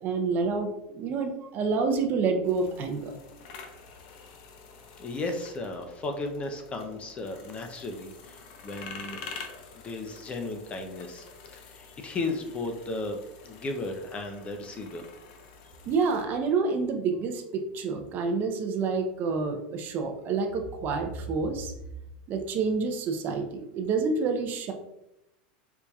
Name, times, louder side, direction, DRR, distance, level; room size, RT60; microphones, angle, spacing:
voice 1, 0.0-3.1 15.9-21.7 22.3-24.7, right 4 dB, 40° right, 5 dB, 0.5 m, -28 dB
sound 1, 2.4-16.2, left 5 dB, 65° left, 0.6 m, -47 dB
voice 2, 5.0-15.1, left 2 dB, 25° left, 5 dB, 0.5 m, -35 dB
4.6 x 2.6 x 2.3 m, 0.86 s
supercardioid pair, 125°, 5 cm